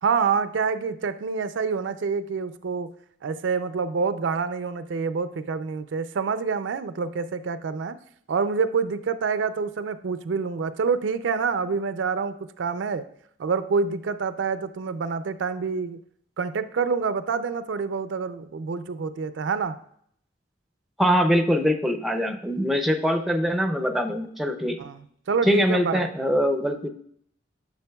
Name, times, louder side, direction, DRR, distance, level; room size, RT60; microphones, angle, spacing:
voice 1, 0.0-2.9 3.2-8.0 8.3-13.0 13.4-16.0 16.4-19.8 24.8-26.1, right 5 dB, 85° right, 12 dB, 0.4 m, -27 dB
voice 2, 21.0-24.8 25.4-26.9, equal, ahead, 6 dB, 0.4 m, -23 dB
9.6 x 6.2 x 2.3 m, 0.66 s
head